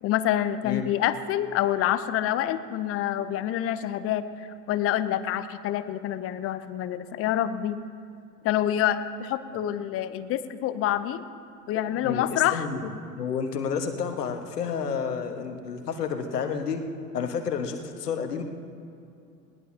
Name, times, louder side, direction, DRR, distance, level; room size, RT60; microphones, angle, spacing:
voice 1, 0.0-7.8 8.4-11.2 11.7-12.7, left 11 dB, 30° left, 13 dB, 0.7 m, -27 dB
voice 2, 11.9-16.8 17.1-18.4, left 6 dB, 70° left, 6 dB, 1.6 m, -30 dB
20.5 x 18.0 x 2.9 m, 2.5 s
figure-of-eight pair, 85°, 49 cm